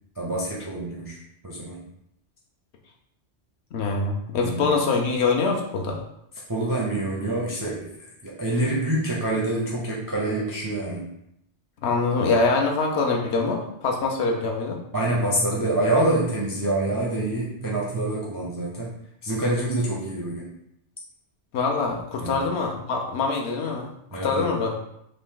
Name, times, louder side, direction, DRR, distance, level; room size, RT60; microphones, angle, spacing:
voice 1, 0.2-1.2 1.4-1.8 4.3-4.8 6.5-7.9 8.2-11.1 14.9-18.9 19.2-20.4 22.2-22.5 24.1-24.5, right 1 dB, 30° right, -4 dB, 0.3 m, -26 dB
voice 2, 3.7-6.0 11.8-14.8 21.5-23.9 24.2-24.7, left 4 dB, 70° left, 1 dB, 0.8 m, -24 dB
3.1 x 2.5 x 3.6 m, 0.77 s
omnidirectional pair, 1.2 m